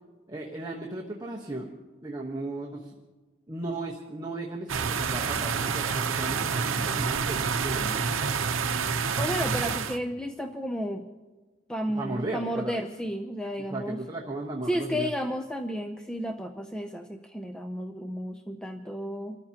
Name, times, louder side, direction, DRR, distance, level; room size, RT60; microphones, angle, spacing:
voice 1, 0.3-2.9 3.5-8.1 11.9-12.8 13.7-15.1, right 2 dB, 20° right, -2 dB, 1.1 m, -36 dB
sound 1, 4.7-10.0, right 5 dB, 75° right, 0.8 m, -28 dB
voice 2, 9.1-11.1 11.7-14.0 14.7-19.4, equal, 5° left, 4 dB, 0.5 m, -32 dB
28.5 x 14.0 x 2.9 m, 1.3 s
head